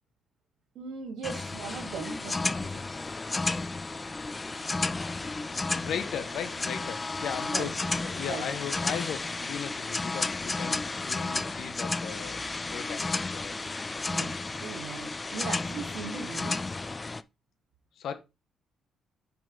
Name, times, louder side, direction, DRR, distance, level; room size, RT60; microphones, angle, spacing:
voice 1, 0.8-2.8 7.5-8.4 14.1-16.8, right 5 dB, 75° right, 2.0 m, -39 dB
sound 1, 1.2-17.2, left 3 dB, 25° left, 0.4 m, -32 dB
voice 2, 4.9-5.3 5.8-13.5 18.0-18.1, left 8 dB, 70° left, 1.2 m, -37 dB
6.0 x 5.4 x 3.9 m
cardioid pair, 90°, 0 cm